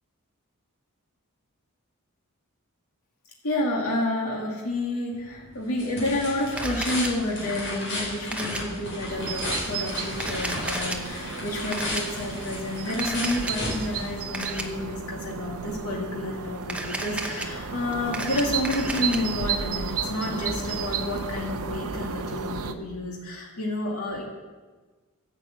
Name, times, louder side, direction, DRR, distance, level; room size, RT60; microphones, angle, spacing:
voice 1, 3.4-24.2, left 1 dB, 85° left, -2 dB, 2.2 m, -30 dB
sound 1, 5.1-14.6, left 2 dB, 55° left, 4.6 m, -35 dB
Camera, 6.6-7.1 8.3-8.6 10.1-11.0 11.7-12.0 13.0-13.5 14.3-14.6 16.6-17.5 17.9-19.2, right 2 dB, 5° right, 0.8 m, -33 dB
sound 2, 9.1-22.7, right 6 dB, 80° right, 0.7 m, -33 dB
11.0 x 7.5 x 7.7 m, 1.3 s
head